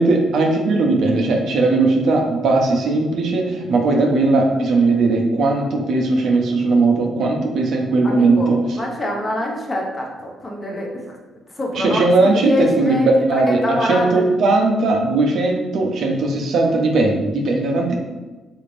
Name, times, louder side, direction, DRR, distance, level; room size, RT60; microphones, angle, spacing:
voice 1, 0.0-8.8 11.7-18.0, right 3 dB, 70° right, 1 dB, 0.6 m, -18 dB
voice 2, 8.0-11.0 11.6-12.1 12.3-13.1 13.5-14.2, left 1 dB, 25° left, -1 dB, 0.9 m, -25 dB
4.0 x 2.5 x 3.2 m, 1.2 s
cardioid pair, 90°, 0 cm